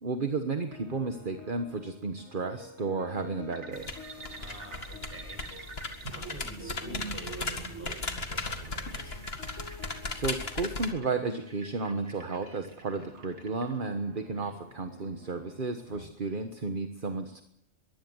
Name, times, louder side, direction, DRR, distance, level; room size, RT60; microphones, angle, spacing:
voice 1, 0.0-3.9 10.1-17.4, right 3 dB, 50° right, 7 dB, 1.5 m, -33 dB
sound 1, 0.7-16.1, left 2 dB, 90° left, 2.7 m, -51 dB
sound 2, 3.5-13.7, right 5 dB, 80° right, 2.3 m, -47 dB
sound 3, 3.7-10.9, left 3 dB, 60° left, 2.3 m, -37 dB
voice 2, 4.4-5.4 6.1-9.2 14.3-14.5, equal, 10° right, 2 dB, 7.7 m, -47 dB
22.5 x 16.0 x 8.1 m, 0.76 s
omnidirectional pair, 1.2 m